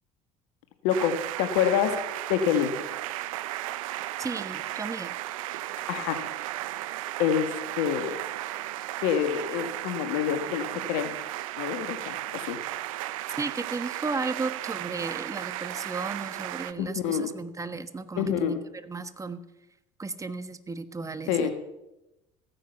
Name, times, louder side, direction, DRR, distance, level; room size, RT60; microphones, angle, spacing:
voice 1, 0.8-2.0 2.3-2.7 5.9-6.2 7.2-8.2 9.0-11.1 11.6-12.6 16.8-17.3 18.2-18.6 21.3-21.5, left 8 dB, 75° left, 8 dB, 1.6 m, -27 dB
sound 1, 0.9-16.7, right 15 dB, 85° right, 0.6 m, -35 dB
voice 2, 4.2-5.1 13.4-19.4 20.0-21.5, right 3 dB, 20° right, 11 dB, 1.3 m, -34 dB
15.0 x 9.8 x 6.9 m, 0.92 s
hypercardioid pair, 80°, 17 cm